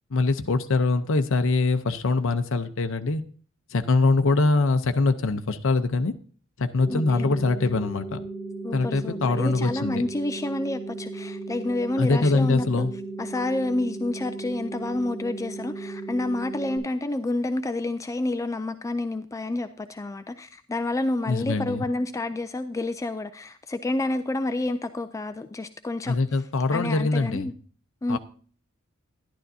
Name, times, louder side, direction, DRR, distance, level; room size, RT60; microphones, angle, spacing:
voice 1, 0.1-3.2 3.7-6.1 6.6-8.2 8.7-10.0 12.0-12.9 21.3-21.9 26.1-27.5 28.1-28.2, left 3 dB, 65° left, 0.7 m, -23 dB
sound 1, 6.8-16.8, right 3 dB, 70° right, 5.6 m, -36 dB
voice 2, 6.9-7.4 8.6-12.9 13.2-26.2 26.7-27.5 28.0-28.2, left 2 dB, 15° left, 0.3 m, -29 dB
11.5 x 11.0 x 2.7 m
head